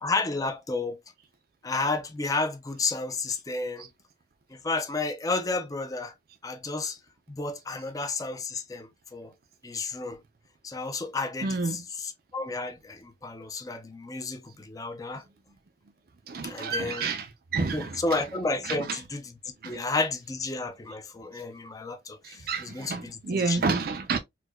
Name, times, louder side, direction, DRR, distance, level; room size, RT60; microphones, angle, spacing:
voice 1, 0.0-1.0 1.6-3.9 4.5-6.1 6.4-7.0 7.3-9.3 9.6-10.2 10.6-15.2 16.4-17.1 17.7-19.3 19.6-23.8, left 3 dB, 20° left, 0.4 m, -32 dB
voice 2, 11.4-11.8 16.3-18.2 18.6-19.0 19.6-19.8 22.2-24.2, right 4 dB, 50° right, 0.4 m, -30 dB
4.5 x 2.2 x 2.2 m
head